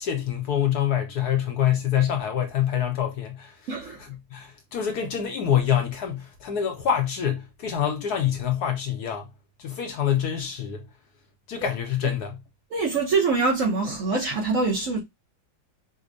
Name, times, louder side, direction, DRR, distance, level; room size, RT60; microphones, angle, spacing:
voice 1, 0.0-3.6 4.0-9.3 9.6-10.8 11.5-12.4, left 9 dB, 65° left, 1.0 m, -26 dB
voice 2, 3.7-4.0 12.7-15.0, right 4 dB, 55° right, 0.9 m, -24 dB
5.1 x 2.1 x 2.4 m
omnidirectional pair, 2.0 m